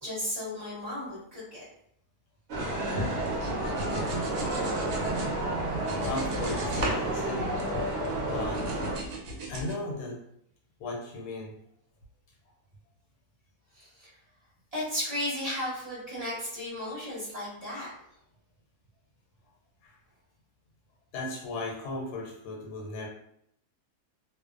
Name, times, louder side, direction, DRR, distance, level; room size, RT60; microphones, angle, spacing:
voice 1, 0.0-1.6 13.8-14.1 14.7-17.9, left 1 dB, 25° right, -8 dB, 1.0 m, -34 dB
sound 1, 2.5-9.0, right 1 dB, 55° right, 0.8 m, -31 dB
sound 2, 3.0-5.3 5.7-7.0 7.3-8.2 8.5-9.7, right 1 dB, 80° right, 1.1 m, -37 dB
voice 2, 6.0-7.4 8.3-8.6 9.5-10.2 10.8-11.5 19.8-19.9 21.1-23.1, left 2 dB, 80° left, 0 dB, 1.2 m, -35 dB
2.6 x 2.1 x 2.4 m, 0.71 s
omnidirectional pair, 1.7 m